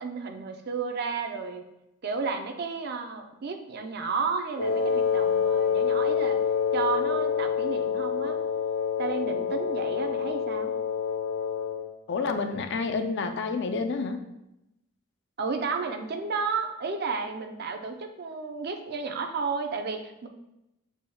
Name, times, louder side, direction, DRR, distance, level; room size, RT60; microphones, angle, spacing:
voice 1, 0.0-1.6 2.0-6.4 6.7-8.4 9.0-10.7 15.4-20.3, right 5 dB, 50° right, 5 dB, 0.5 m, -32 dB
Wind instrument woodwind instrument, 4.6-11.9, left 7 dB, 75° left, 0.8 m, -27 dB
voice 2, 12.1-14.2, left 4 dB, 55° left, 6 dB, 0.4 m, -29 dB
6.9 x 3.4 x 2.2 m, 0.89 s
head